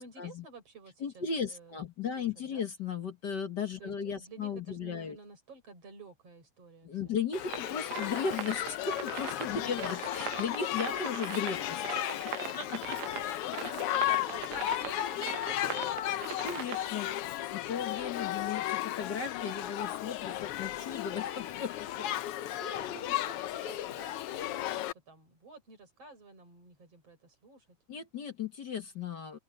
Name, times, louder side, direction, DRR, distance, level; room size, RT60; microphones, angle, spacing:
voice 1, 0.0-1.8 2.2-2.7 3.8-7.2 9.5-10.1 12.4-12.6 13.4-16.1 22.8-27.7, right 3 dB, 55° right, 7.7 m, -51 dB
voice 2, 1.0-5.2 6.8-13.0 16.1-22.1 22.6-23.1 27.9-29.4, left 6 dB, 45° left, 1.6 m, -36 dB
Shout / Human group actions, 7.3-24.9, left 13 dB, 75° left, 1.4 m, -35 dB
sound 1, 7.4-17.2, right 12 dB, 70° right, 2.1 m, -40 dB
open air
omnidirectional pair, 3.3 m